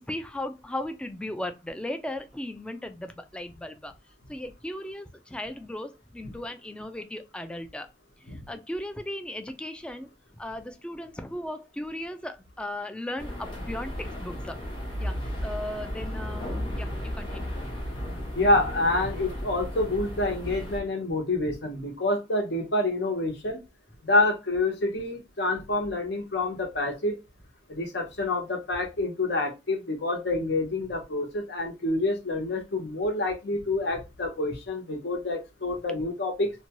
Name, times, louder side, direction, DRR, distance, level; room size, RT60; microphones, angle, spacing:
voice 1, 0.0-3.9 4.3-7.9 8.2-10.1 10.4-14.6 15.0-15.2 15.4-17.5, left 1 dB, 5° left, 0.3 m, -36 dB
sound 1, 13.2-20.8, equal, 30° left, 0.8 m, -34 dB
voice 2, 18.3-23.6 24.0-27.2 27.7-36.5, left 2 dB, 70° left, 0.9 m, -27 dB
2.7 x 2.2 x 2.9 m
head